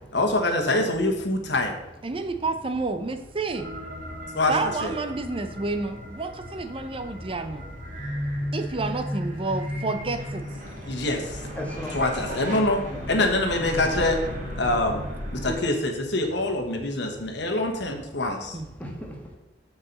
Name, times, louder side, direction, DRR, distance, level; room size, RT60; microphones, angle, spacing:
voice 1, 0.1-1.7 4.3-4.5 4.8-4.9 10.9-11.4 11.9-12.8 13.1-14.2 14.6-15.0 15.4-18.6, left 2 dB, 70° left, 4 dB, 1.4 m, -25 dB
voice 2, 2.0-3.6 4.5-7.6 8.5-10.4 18.5-18.7, right 3 dB, 30° right, 8 dB, 0.7 m, -29 dB
sound 1, 3.5-15.5, equal, 45° right, 1.9 m, -35 dB
voice 3, 11.5-12.0 12.3-13.1 15.4-15.6 18.8-19.3, left 1 dB, 10° left, 0 dB, 1.4 m, -37 dB
7.0 x 4.7 x 6.7 m, 0.94 s
head